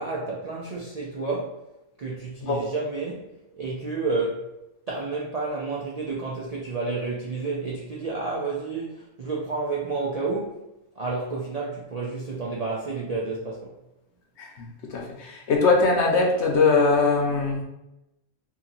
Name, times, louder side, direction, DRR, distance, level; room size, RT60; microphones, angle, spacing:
voice 1, 0.0-1.6 2.0-4.5 4.9-13.8, right 3 dB, 60° right, -3 dB, 0.4 m, -30 dB
voice 2, 14.4-17.6, left 3 dB, 65° left, 1 dB, 0.9 m, -22 dB
2.9 x 2.7 x 3.8 m, 0.92 s
omnidirectional pair, 1.3 m